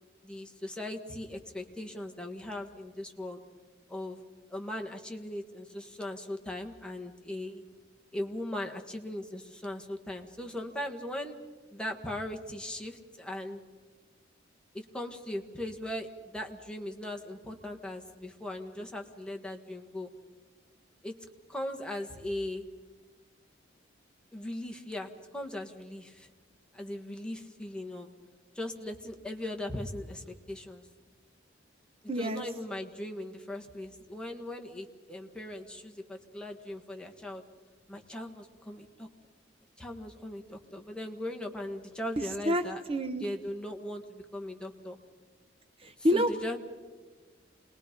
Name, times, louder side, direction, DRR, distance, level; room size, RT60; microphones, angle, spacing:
voice 1, 0.2-3.4 3.9-4.2 4.5-7.6 8.1-11.4 11.7-13.6 14.7-20.1 21.0-21.1 21.5-22.7 24.3-26.3 26.7-28.1 28.5-30.8 32.2-37.4 37.9-39.1 39.8-42.8 43.2-45.0 46.1-46.6, left 1 dB, 5° left, 1 dB, 1.6 m, -39 dB
voice 2, 32.1-32.4 42.2-42.6 42.9-43.2 45.8-46.3, equal, 30° right, 8 dB, 0.9 m, -28 dB
27.5 x 20.5 x 5.3 m, 1.4 s
head